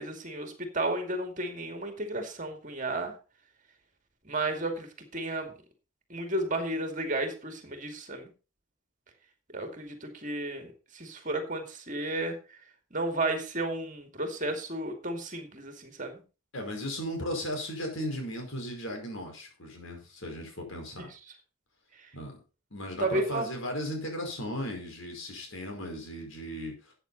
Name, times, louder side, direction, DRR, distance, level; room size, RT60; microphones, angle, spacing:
voice 1, 0.0-3.1 4.2-5.5 6.1-8.3 9.5-12.6 12.9-16.2 21.1-21.2 22.0-22.1 23.0-23.5, right 2 dB, 35° right, 5 dB, 2.3 m, -33 dB
voice 2, 16.5-21.1 22.1-22.4 22.7-26.9, equal, 65° left, 3 dB, 5.0 m, -36 dB
13.5 x 8.8 x 4.1 m, 0.32 s
head